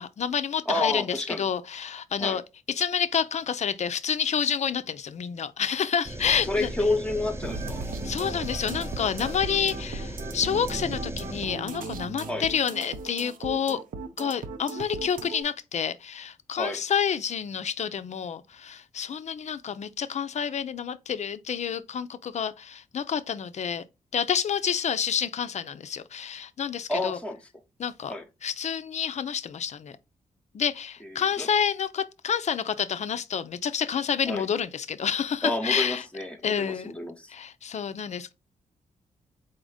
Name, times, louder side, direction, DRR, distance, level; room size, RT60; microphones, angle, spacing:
voice 1, 0.0-2.4 2.7-6.7 8.0-13.8 14.2-23.8 24.1-27.2 27.8-28.1 28.4-30.0 30.5-36.0 36.4-36.9 37.3-38.3, left 7 dB, 55° left, 0.5 m, -29 dB
voice 2, 0.7-1.4 2.2-2.4 6.5-7.8 12.3-12.4 16.5-16.8 26.9-27.4 28.1-28.2 31.0-31.5 34.2-34.5 35.4-37.3, left 2 dB, 10° left, 0.9 m, -29 dB
sound 1, 6.0-11.5, right 1 dB, 15° right, 0.8 m, -36 dB
sound 2, 7.4-15.4, right 4 dB, 75° right, 0.8 m, -37 dB
4.2 x 2.6 x 4.8 m
cardioid pair, 80°, 14 cm